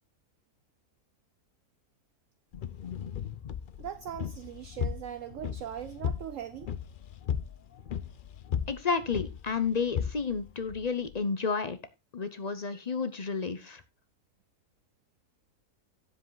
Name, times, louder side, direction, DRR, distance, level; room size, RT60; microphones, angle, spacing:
sound 1, 2.5-11.2, left 8 dB, 85° left, 0.4 m, -36 dB
voice 1, 3.8-6.7, right 10 dB, 65° right, 0.9 m, -40 dB
voice 2, 8.7-11.8 12.1-13.8, left 5 dB, 40° left, 0.6 m, -31 dB
9.9 x 7.6 x 3.9 m
omnidirectional pair, 1.6 m